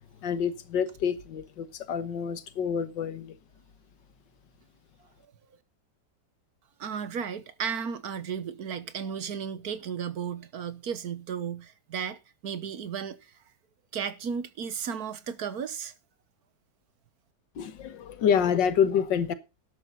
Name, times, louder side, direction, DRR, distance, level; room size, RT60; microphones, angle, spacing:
voice 1, 0.2-3.4 17.6-19.3, left 7 dB, 85° left, 1.9 m, -27 dB
voice 2, 6.8-13.3 13.9-15.9, right 7 dB, 60° right, 1.5 m, -34 dB
13.0 x 11.0 x 4.0 m
omnidirectional pair, 1.9 m